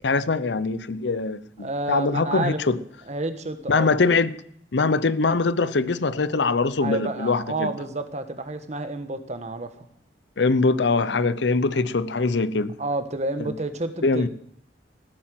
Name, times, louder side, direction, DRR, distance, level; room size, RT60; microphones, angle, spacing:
voice 1, 0.0-2.8 3.7-4.3 4.7-7.7 10.4-12.7 13.4-13.5 14.0-14.3, left 3 dB, 75° left, 0.7 m, -22 dB
voice 2, 1.6-2.6 3.1-3.9 6.8-9.9 12.8-14.3, right 2 dB, 40° right, 1.4 m, -30 dB
15.5 x 8.8 x 7.7 m
head